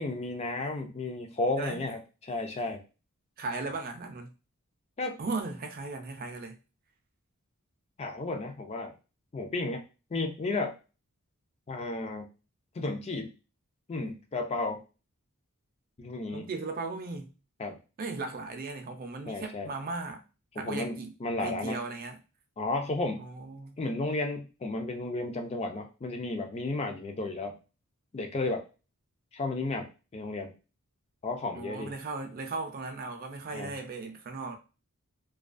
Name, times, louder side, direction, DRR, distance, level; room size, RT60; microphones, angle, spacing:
voice 1, 0.0-2.8 5.0-5.2 8.0-8.9 9.3-9.8 10.1-10.8 11.7-12.3 12.8-13.3 13.9-14.8 16.0-16.5 17.6-17.8 19.3-19.7 20.6-21.8 22.6-23.2 23.8-27.5 28.1-28.6 29.3-30.5 31.2-31.9 33.5-33.7, left 2 dB, 30° left, 0.4 m, -33 dB
voice 2, 3.4-4.3 5.2-6.6 16.3-17.3 18.0-20.2 20.6-21.1 21.4-22.2 23.2-23.8 31.5-34.6, right 3 dB, 40° right, 0.4 m, -37 dB
2.3 x 2.3 x 2.4 m
head